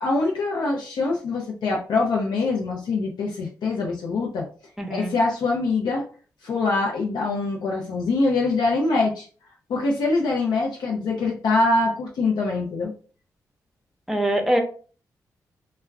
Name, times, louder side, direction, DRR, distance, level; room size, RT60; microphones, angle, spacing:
voice 1, 0.0-4.5 4.9-6.0 6.4-9.3 9.7-12.9, left 3 dB, 75° left, -2 dB, 0.5 m, -24 dB
voice 2, 4.8-5.1 14.1-14.6, right 1 dB, 5° right, 4 dB, 0.7 m, -23 dB
2.2 x 2.1 x 3.4 m, 0.40 s
supercardioid pair, 50°, 7 cm